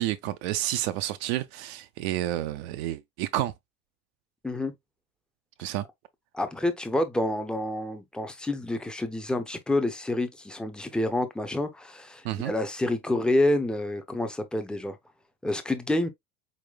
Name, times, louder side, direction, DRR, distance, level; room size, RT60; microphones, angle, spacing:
voice 1, 0.0-3.5 5.6-5.9 12.2-12.5, right 14 dB, 50° right, 0.5 m, -30 dB
voice 2, 6.3-15.0 15.4-16.1, left 1 dB, ahead, 0.6 m, -28 dB
4.3 x 4.1 x 2.2 m
figure-of-eight pair, 70°, 43 cm